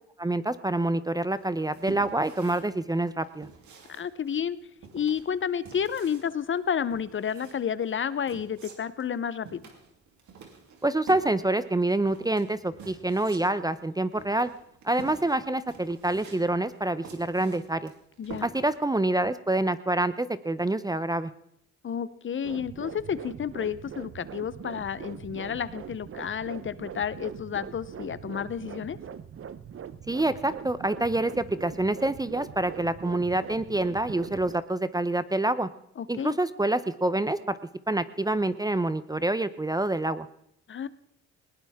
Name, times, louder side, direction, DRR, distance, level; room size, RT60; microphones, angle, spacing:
voice 1, 0.2-3.5 10.8-14.5 14.8-17.9 18.4-21.3 30.1-35.7 36.1-37.6 37.9-40.3, right 2 dB, 15° right, 14 dB, 0.6 m, -27 dB
sound 1, 1.4-18.9, right 5 dB, 70° right, 3.1 m, -48 dB
voice 2, 4.0-4.6 4.9-9.6 18.2-18.5 21.8-29.0 36.0-36.4 40.7-40.9, left 8 dB, 40° left, 16 dB, 0.8 m, -31 dB
sound 2, 22.4-34.6, right 8 dB, 45° right, 0.8 m, -42 dB
20.0 x 17.5 x 3.6 m, 0.75 s
cardioid pair, 90°, 30 cm